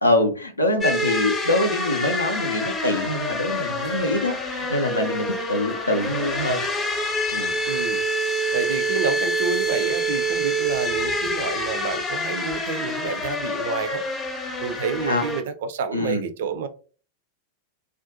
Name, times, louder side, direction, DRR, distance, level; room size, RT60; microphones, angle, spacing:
voice 1, 0.0-6.6 7.3-7.6 15.0-15.2 15.9-16.2, left 1 dB, 85° left, 0.5 m, -24 dB
sound 1, 0.8-15.4, equal, 20° left, 0.5 m, -26 dB
voice 2, 7.7-8.1 8.5-14.0 14.6-16.7, right 5 dB, 55° right, 0.3 m, -29 dB
2.4 x 2.2 x 2.6 m
figure-of-eight pair, 90°, 0 cm